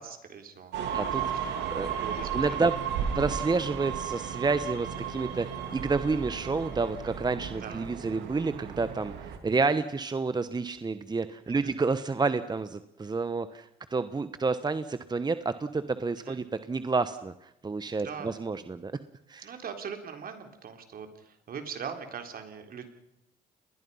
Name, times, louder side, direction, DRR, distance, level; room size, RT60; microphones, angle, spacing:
voice 1, 0.0-2.7 7.5-7.9 11.6-11.8 16.2-16.4 18.0-18.4 19.4-22.9, right 6 dB, 55° right, 6 dB, 3.9 m, -41 dB
sound 1, 0.7-9.4, right 7 dB, 85° right, 2.9 m, -34 dB
voice 2, 0.9-1.9 2.3-2.7 3.1-18.9 19.3-19.5, right 4 dB, 25° right, 12 dB, 1.1 m, -29 dB
29.0 x 21.0 x 5.6 m, 0.84 s
supercardioid pair, 80°, 18 cm